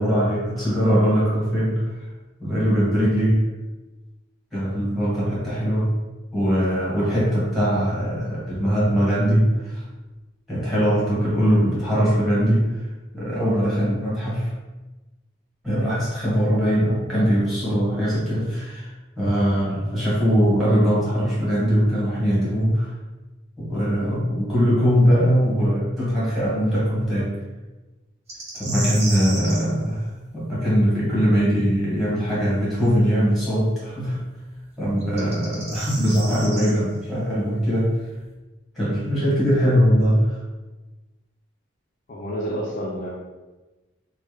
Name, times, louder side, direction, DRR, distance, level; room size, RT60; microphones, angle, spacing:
voice 1, 0.0-1.9 2.4-3.4 4.5-5.9 6.3-9.8 10.5-12.8 13.1-14.5 15.6-22.9 23.6-27.3 28.5-30.0 30.3-34.2 34.8-37.9 38.7-40.3, equal, ahead, -9 dB, 1.2 m, -21 dB
sound 1, 28.3-29.7 32.8-32.9 35.0-36.7, right 2 dB, 30° right, 0.6 m, -32 dB
voice 2, 42.1-43.1, equal, 40° left, -4 dB, 0.4 m, -29 dB
3.2 x 2.1 x 3.1 m, 1.1 s
head